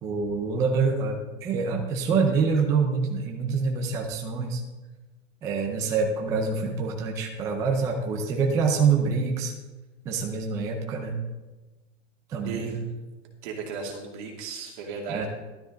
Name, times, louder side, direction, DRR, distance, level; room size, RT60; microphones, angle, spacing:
voice 1, 0.0-4.6 5.4-9.5 10.1-11.1 12.3-12.8 15.1-15.2, right 5 dB, 10° right, 1 dB, 0.5 m, -26 dB
voice 2, 12.4-12.8 13.4-15.3, right 5 dB, 40° right, 0 dB, 2.7 m, -35 dB
13.0 x 12.5 x 3.9 m, 1.2 s
supercardioid pair, 175°, 36 cm